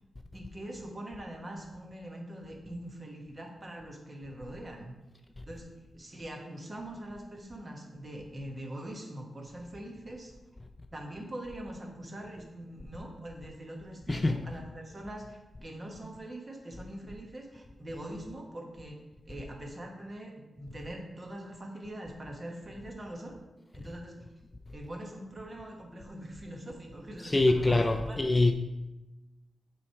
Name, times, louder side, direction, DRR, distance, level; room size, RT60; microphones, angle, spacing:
voice 1, 0.3-5.0 5.5-5.7 5.9-10.3 10.9-23.4 23.7-24.2 24.7-28.2, right 1 dB, 30° right, 1 dB, 1.2 m, -43 dB
voice 2, 27.2-28.5, left 2 dB, 20° left, 6 dB, 0.4 m, -24 dB
6.9 x 3.3 x 4.6 m, 1.0 s
cardioid pair, 85°, 0 cm